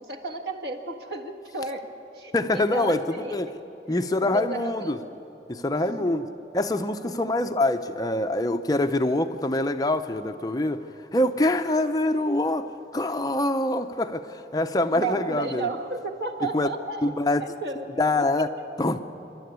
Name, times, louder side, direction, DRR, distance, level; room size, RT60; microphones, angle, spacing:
voice 1, 0.0-1.9 2.1-3.3 4.0-5.0 5.7-6.4 14.9-17.0 17.4-18.5, right 3 dB, 75° right, 3 dB, 1.6 m, -33 dB
voice 2, 2.3-3.5 3.9-5.0 5.5-6.3 6.5-10.8 11.1-15.7 16.5-16.7 17.0-17.4 18.0-18.5 18.8-19.0, left 2 dB, 20° left, 7 dB, 0.6 m, -25 dB
26.5 x 12.0 x 9.4 m, 2.9 s
head